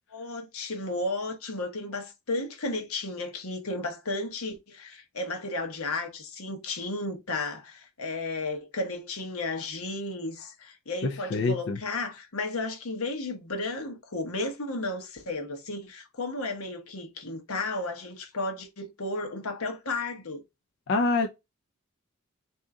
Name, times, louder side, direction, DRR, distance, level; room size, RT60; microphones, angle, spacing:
voice 1, 0.1-20.4, left 2 dB, 80° left, 1.0 m, -33 dB
voice 2, 11.3-11.8 20.9-21.3, left 3 dB, 50° left, 0.4 m, -25 dB
3.8 x 2.7 x 3.5 m
head